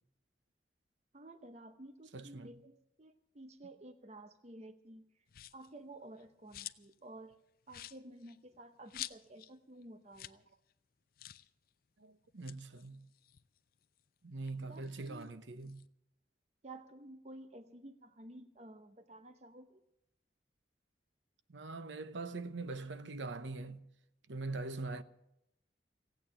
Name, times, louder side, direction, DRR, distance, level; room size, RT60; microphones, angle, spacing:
voice 1, 1.1-5.3 5.5-7.4 7.7-10.5 14.7-15.3 16.6-19.8, right 1 dB, 35° right, 0.7 m, -53 dB
voice 2, 2.1-2.5 12.0-13.1 14.2-15.8 21.5-23.8 24.3-25.0, right 3 dB, 85° right, 0.8 m, -42 dB
sound 1, 5.3-5.7 6.1-7.0 7.3-7.4 7.7-9.5 9.8-9.9 10.1-10.4 10.7-10.8 11.2-11.5 12.2-14.0 14.4-15.9, left 13 dB, 50° left, 0.4 m, -49 dB
16.0 x 8.9 x 8.9 m
head